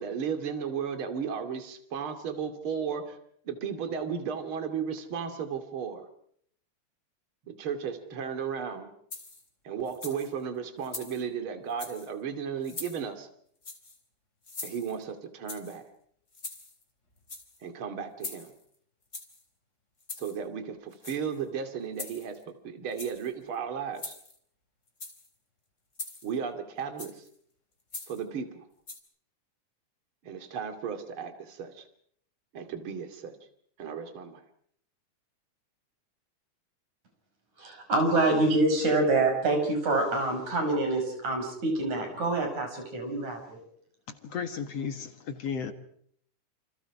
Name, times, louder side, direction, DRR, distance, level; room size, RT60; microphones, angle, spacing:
voice 1, 0.0-3.2 3.4-6.1 7.5-8.9 9.6-13.3 14.6-15.8 17.6-18.5 20.2-24.1 26.2-27.2 28.1-28.6 30.2-31.8 32.5-33.4 33.8-34.4, right 7 dB, 45° right, 7 dB, 3.2 m, -35 dB
sound 1, 9.1-9.5 9.9-10.3 10.8-11.3 11.7-12.1 12.6-13.0 13.6-14.0 14.4-15.0 15.5-15.8 16.3-16.8 17.2-17.6 18.2-18.6 19.1-19.4 20.0-20.4 20.9-21.4 22.0-22.4 22.9-23.3 24.0-24.4 24.9-25.3 26.0-26.4 27.0-27.3 27.9-28.2 28.9-29.0, left 3 dB, 20° left, 3.9 m, -42 dB
voice 2, 37.6-43.6, right 2 dB, 65° right, 4 dB, 7.3 m, -26 dB
voice 3, 44.1-45.7, left 6 dB, 55° left, 7 dB, 2.5 m, -34 dB
28.5 x 27.5 x 4.9 m, 0.65 s
omnidirectional pair, 3.6 m